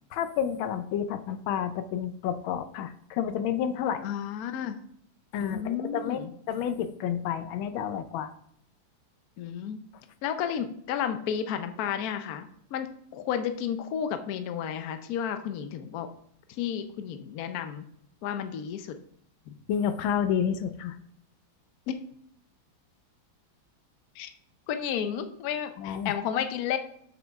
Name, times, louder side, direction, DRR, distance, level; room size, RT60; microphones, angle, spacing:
voice 1, 0.1-4.0 5.3-6.2 6.5-8.3 19.7-21.0 25.8-26.1, left 8 dB, 85° left, 11 dB, 1.4 m, -30 dB
voice 2, 4.0-4.8 5.4-6.3 9.4-9.8 10.2-16.1 16.5-17.9 18.2-19.0 19.5-19.6 21.9-22.0 24.1-24.3 24.7-26.8, left 8 dB, 65° left, 8 dB, 0.9 m, -32 dB
7.4 x 5.9 x 3.5 m, 0.67 s
omnidirectional pair, 2.2 m